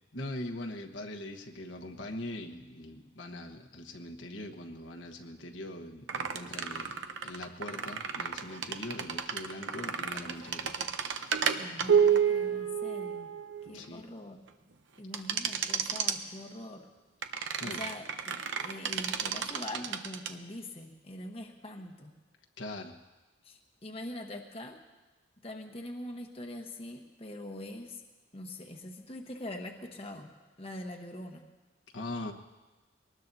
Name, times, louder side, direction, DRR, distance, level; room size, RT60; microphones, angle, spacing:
voice 1, 0.1-6.9 7.2-10.9 13.7-14.0 17.3-17.8 22.6-22.9 31.9-32.3, left 1 dB, 70° left, 2 dB, 1.2 m, -41 dB
sound 1, 6.1-13.9 15.1-16.2 17.2-20.3, right 7 dB, 65° right, 0.8 m, -31 dB
voice 2, 11.6-13.3 13.7-14.4 15.0-16.9 17.4-22.1 23.4-24.8 25.4-28.0 28.3-30.3 30.6-31.4, left 1 dB, 30° left, 3 dB, 1.1 m, -43 dB
23.0 x 19.5 x 2.7 m, 1.2 s
head